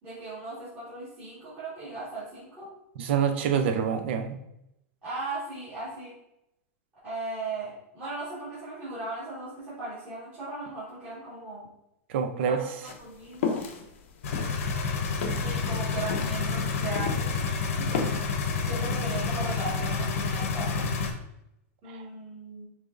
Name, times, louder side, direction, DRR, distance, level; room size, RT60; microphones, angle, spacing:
voice 1, 0.0-2.7 5.0-6.2 7.0-11.7 12.4-12.6 13.0-13.6 15.4-17.5 17.8-18.2 18.7-20.8 21.8-22.7, right 2 dB, 20° right, -13 dB, 1.7 m, -37 dB
voice 2, 3.0-4.4 12.1-12.6 21.9-22.0, right 7 dB, 50° right, 7 dB, 0.5 m, -26 dB
sound 1, 12.8-17.5 17.7-18.4, left 6 dB, 55° left, 0.7 m, -33 dB
sound 2, 14.2-21.1, left 4 dB, 75° left, 0.9 m, -29 dB
5.7 x 3.3 x 2.6 m, 0.83 s
supercardioid pair, 175°, 8 cm